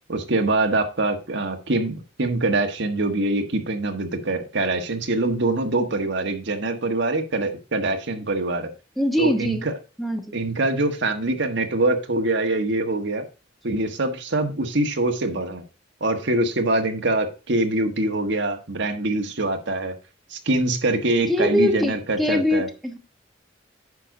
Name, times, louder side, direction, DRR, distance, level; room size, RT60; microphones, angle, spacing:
voice 1, 0.1-8.7 9.2-9.7 10.3-13.2 13.6-15.6 16.0-19.9 20.3-22.7, right 2 dB, 65° right, 5 dB, 1.5 m, -24 dB
voice 2, 9.0-9.7 10.0-10.3 21.3-23.0, left 1 dB, ahead, 4 dB, 1.1 m, -23 dB
9.9 x 6.0 x 3.8 m, 0.32 s
head